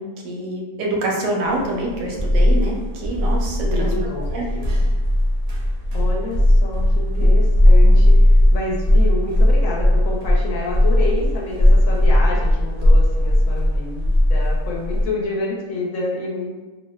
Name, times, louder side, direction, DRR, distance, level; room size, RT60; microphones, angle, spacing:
voice 1, 0.0-3.9 4.3-4.5 7.1-7.3 7.8-8.0, right 1 dB, 80° right, -1 dB, 1.0 m, -26 dB
sound 1, 1.6-15.1, left 1 dB, 60° right, 0.7 m, -16 dB
voice 2, 3.6-4.7 5.9-16.5, left 2 dB, 75° left, -2 dB, 1.0 m, -28 dB
2.7 x 2.1 x 2.2 m, 1.2 s
omnidirectional pair, 1.5 m